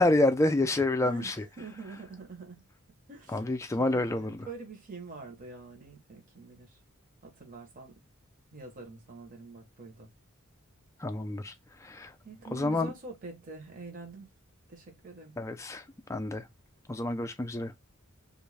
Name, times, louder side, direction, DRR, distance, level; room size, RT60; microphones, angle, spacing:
voice 1, 0.0-1.3 3.3-4.5 11.0-12.1 12.5-12.9 15.4-15.8 16.1-16.5 16.9-17.7, left 2 dB, 15° left, 0.3 m, -28 dB
voice 2, 1.0-2.7 3.1-3.4 3.8-6.8 7.2-8.0 8.5-10.1 12.2-14.3 14.7-15.3, right 3 dB, 40° right, 0.9 m, -45 dB
2.5 x 2.1 x 3.2 m
head